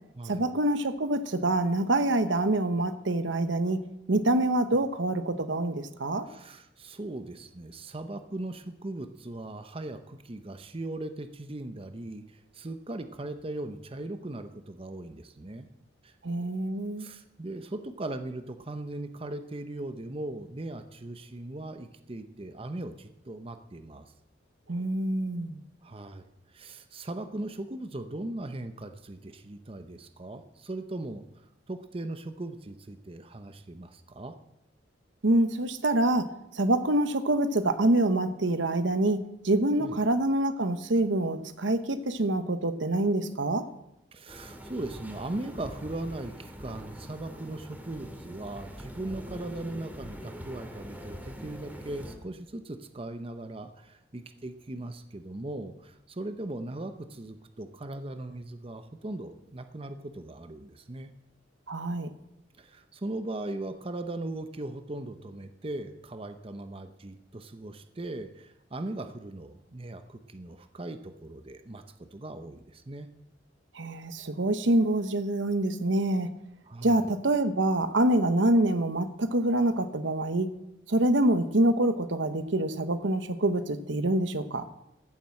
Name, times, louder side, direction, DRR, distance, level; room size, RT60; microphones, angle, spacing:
voice 1, 0.2-3.8 4.1-6.3 16.2-17.1 24.7-25.6 35.2-43.7 61.7-62.1 73.7-76.3 76.8-80.5 80.9-84.6, right 1 dB, 85° right, 10 dB, 1.1 m, -26 dB
voice 2, 6.2-15.7 16.0-16.2 17.0-24.1 25.8-26.3 26.5-34.4 39.8-40.0 44.1-61.1 62.6-71.8 72.1-73.1 76.7-77.1, right 2 dB, 30° right, 9 dB, 0.7 m, -39 dB
sound 1, 44.3-52.2, equal, 10° right, 2.0 m, -43 dB
14.5 x 7.5 x 7.6 m, 0.84 s
head